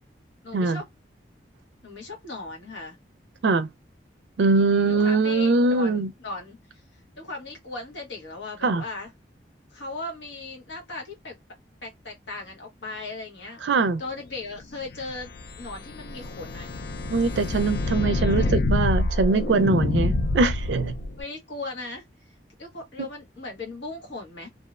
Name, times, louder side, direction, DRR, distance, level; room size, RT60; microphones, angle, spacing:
voice 1, 0.4-0.9 1.8-3.0 4.9-6.6 6.9-9.1 9.7-11.4 11.8-13.6 14.0-15.3 15.6-16.7 18.2-18.6 21.2-22.0 22.6-24.5, left 3 dB, 80° left, 1.1 m, -37 dB
voice 2, 4.4-6.1 8.6-8.8 13.6-14.0 17.1-20.9, right 3 dB, 80° right, 0.4 m, -22 dB
sound 1, 14.9-21.2, left 2 dB, 55° left, 0.3 m, -27 dB
2.7 x 2.0 x 2.3 m
head